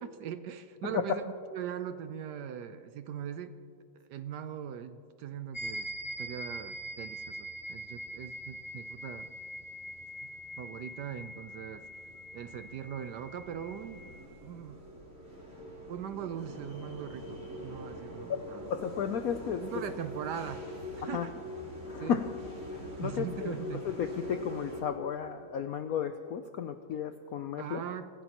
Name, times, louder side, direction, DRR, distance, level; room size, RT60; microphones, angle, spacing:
voice 1, 0.0-3.5 4.1-5.9 6.2-9.3 10.6-11.9 12.3-14.1 14.4-14.8 15.9-18.7 19.6-20.6 21.0-21.3 22.0-22.2 23.0-23.9 27.6-28.1, right 9 dB, 70° right, 10 dB, 1.0 m, -40 dB
sound 1, 5.5-14.2, equal, 15° left, 2.4 m, -43 dB
sound 2, 7.6-24.8, left 1 dB, 40° right, 3.6 m, -44 dB
voice 2, 18.3-19.6 21.1-21.3 21.9-22.3 22.7-23.6 23.8-27.8, left 8 dB, 85° left, 8 dB, 0.8 m, -33 dB
25.5 x 15.0 x 2.9 m, 2.3 s
omnidirectional pair, 2.2 m